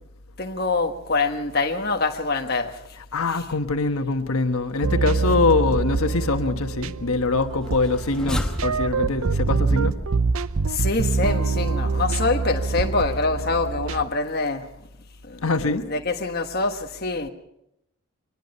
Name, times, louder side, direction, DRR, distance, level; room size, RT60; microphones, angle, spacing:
voice 1, 0.4-2.8 3.3-3.4 5.3-5.4 10.6-14.7 15.2-17.3, left 3 dB, 45° left, 1.4 m, -25 dB
voice 2, 3.1-9.9 15.4-15.8, left 3 dB, 85° left, 1.3 m, -23 dB
sound 1, 4.8-14.0, right 4 dB, 80° right, 0.7 m, -25 dB
sound 2, 7.7-13.0, equal, 5° left, 1.2 m, -34 dB
23.5 x 20.5 x 5.5 m
head